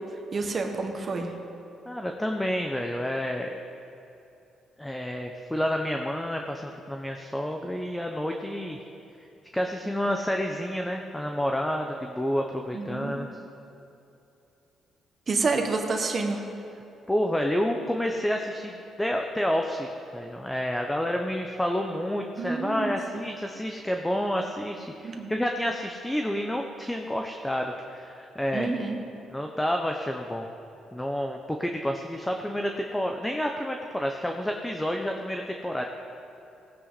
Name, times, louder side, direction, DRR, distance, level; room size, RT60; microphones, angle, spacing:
voice 1, 0.3-1.3 12.7-13.3 15.3-16.4 22.4-23.2 25.0-25.3 28.5-29.0, right 3 dB, 40° right, 3 dB, 1.6 m, -29 dB
voice 2, 1.9-3.5 4.8-8.8 9.5-13.3 17.1-28.7 29.3-30.5 30.9-35.8, equal, 10° left, 3 dB, 0.8 m, -29 dB
17.5 x 9.4 x 4.2 m, 2.8 s
cardioid pair, 90°, 0 cm